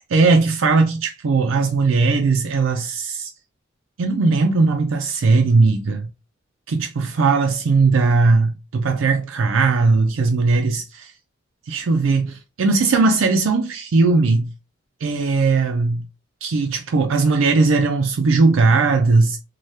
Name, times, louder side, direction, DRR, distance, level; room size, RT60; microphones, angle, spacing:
voice 1, 0.1-3.3 4.0-6.1 6.7-11.1 11.7-14.5 15.0-16.1 16.4-19.4, right 3 dB, 80° right, 0.4 m, -18 dB
3.3 x 2.3 x 2.7 m
head